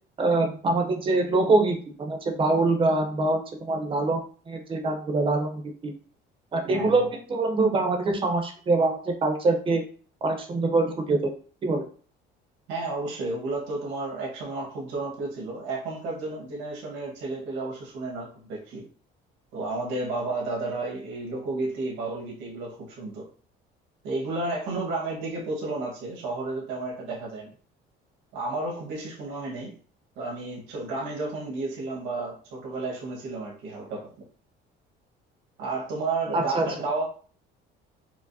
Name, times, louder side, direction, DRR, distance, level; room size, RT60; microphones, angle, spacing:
voice 1, 0.2-5.9 6.5-9.8 10.2-11.3 11.6-11.9 36.3-36.7, right 2 dB, 25° right, 5 dB, 0.6 m, -24 dB
voice 2, 6.7-7.1 12.7-18.9 19.5-23.3 24.0-27.5 28.3-29.7 30.2-34.1 35.6-37.0, right 2 dB, 80° right, -2 dB, 1.4 m, -32 dB
4.6 x 2.1 x 2.6 m, 0.42 s
cardioid pair, 140°, 19 cm